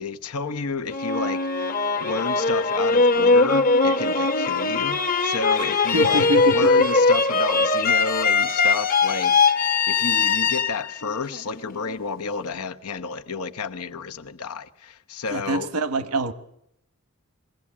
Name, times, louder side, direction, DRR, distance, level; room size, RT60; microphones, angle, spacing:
voice 1, 0.0-9.5 9.9-15.7, left 4 dB, 90° left, 1.0 m, -31 dB
sound 1, 0.9-11.9, left 4 dB, 40° left, 0.9 m, -21 dB
voice 2, 5.9-6.9 15.3-16.3, right 1 dB, 90° right, 1.1 m, -25 dB
22.5 x 16.5 x 8.5 m
head